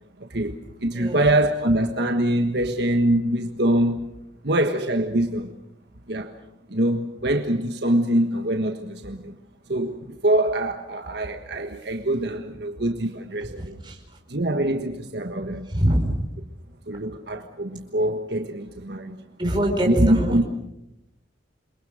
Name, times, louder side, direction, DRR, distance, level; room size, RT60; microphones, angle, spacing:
voice 1, 0.2-4.0 4.4-5.5 6.1-6.3 6.7-9.3 9.7-13.7 14.3-15.6 16.9-19.1 19.9-20.4, right 1 dB, 60° right, 1.5 m, -24 dB
voice 2, 0.9-1.3 13.6-14.0 15.7-16.1 19.4-20.4, right 1 dB, 25° right, 4.7 m, -23 dB
29.0 x 23.0 x 6.5 m
head